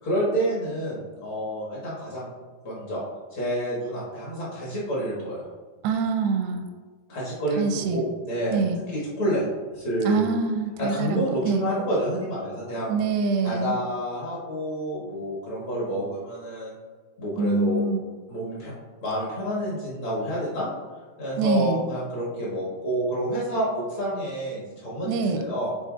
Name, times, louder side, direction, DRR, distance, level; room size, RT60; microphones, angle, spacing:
voice 1, 0.0-2.3 2.6-3.0 3.3-5.4 7.1-8.6 8.9-9.4 9.7-10.3 10.8-12.9 13.4-16.7 17.2-17.8 18.3-18.7 19.0-20.7 21.2-25.7, equal, 60° left, -6 dB, 1.3 m, -28 dB
voice 2, 5.8-6.6 7.6-8.0 8.5-8.8 10.0-11.7 12.9-13.8 17.4-18.0 21.4-21.8 25.0-25.4, right 4 dB, 85° right, 6 dB, 2.7 m, -25 dB
9.7 x 3.9 x 2.4 m, 1.4 s
omnidirectional pair, 4.7 m